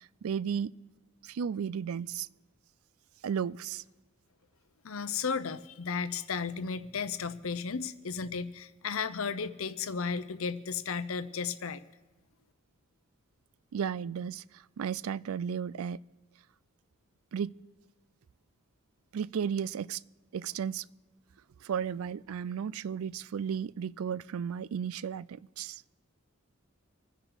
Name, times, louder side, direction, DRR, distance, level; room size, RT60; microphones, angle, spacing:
voice 1, 0.2-0.7 1.2-2.3 3.2-3.8 13.7-14.4 14.8-16.0 17.3-17.5 19.1-20.0 20.3-20.8 21.6-25.8, right 7 dB, 75° right, 21 dB, 0.4 m, -34 dB
voice 2, 4.8-11.8, left 5 dB, 70° left, 13 dB, 0.8 m, -34 dB
25.5 x 10.0 x 4.0 m, 1.2 s
head